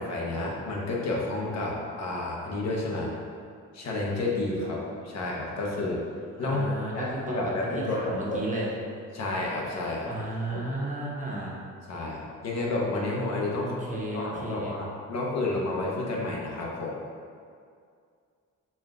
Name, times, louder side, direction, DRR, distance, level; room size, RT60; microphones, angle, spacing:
voice 1, 0.0-3.1 3.7-6.0 6.4-6.6 6.9-8.4 9.1-10.1 10.5-10.6 11.9-13.8 14.1-17.0, left 2 dB, 60° left, -3 dB, 0.8 m, -30 dB
voice 2, 6.4-8.7 10.1-11.6 13.6-14.8, right 1 dB, 25° right, -5 dB, 0.9 m, -34 dB
4.3 x 2.3 x 3.7 m, 2.2 s
cardioid pair, 90°, 30 cm